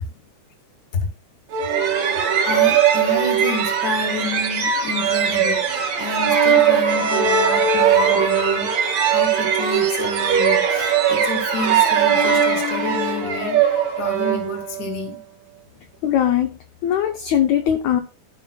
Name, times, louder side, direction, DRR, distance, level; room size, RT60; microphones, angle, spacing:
sound 1, 1.5-15.0, right 7 dB, 60° right, 2.2 m, -19 dB
voice 1, 2.1-15.2, left 3 dB, 35° left, 4 dB, 1.7 m, -30 dB
voice 2, 16.0-18.0, left 10 dB, 75° left, 5 dB, 1.8 m, -20 dB
14.5 x 5.4 x 2.3 m, 0.33 s
omnidirectional pair, 3.7 m